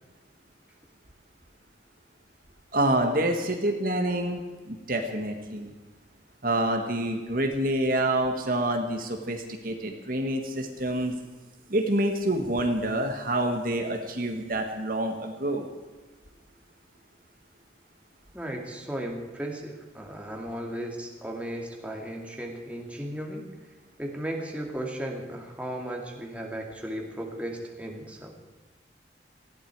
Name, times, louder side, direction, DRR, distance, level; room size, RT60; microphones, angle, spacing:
voice 1, 2.7-4.4 4.7-5.7 6.4-11.1 11.7-15.7, right 1 dB, 50° right, 4 dB, 1.7 m, -27 dB
voice 2, 18.3-23.5 24.0-28.3, right 1 dB, 5° right, 0 dB, 2.4 m, -35 dB
19.5 x 15.5 x 4.8 m, 1.3 s
head